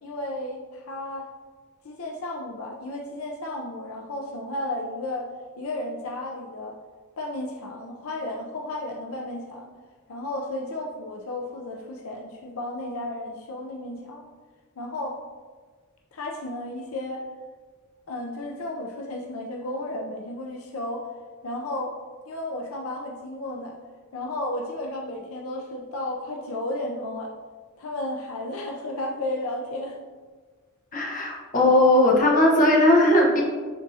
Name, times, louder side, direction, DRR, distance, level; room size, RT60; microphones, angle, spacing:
voice 1, 0.0-1.2 1.8-5.3 5.6-6.8 7.2-9.7 10.1-14.3 14.8-15.2 16.1-17.2 18.1-21.1 21.4-21.9 22.3-23.7 24.1-27.3 27.8-30.0, left 1 dB, 75° left, 0 dB, 0.6 m, -33 dB
voice 2, 30.9-33.4, left 1 dB, 40° left, -2 dB, 1.2 m, -18 dB
10.0 x 3.6 x 2.8 m, 1.5 s
head